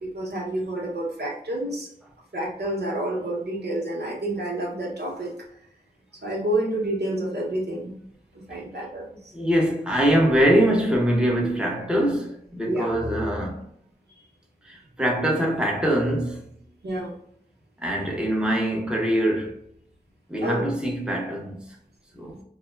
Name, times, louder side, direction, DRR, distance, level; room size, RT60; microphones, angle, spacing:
voice 1, 0.0-1.9 2.3-5.3 6.2-7.9 8.3-9.1 12.7-12.9 16.8-17.1 20.4-20.7, right 1 dB, 85° right, 0.8 m, -29 dB
voice 2, 9.3-13.6 14.6-16.4 17.8-19.6 20.3-21.8 22.1-22.4, equal, 5° right, 0.6 m, -23 dB
3.3 x 2.0 x 2.3 m
wide cardioid pair, 55°, 17 cm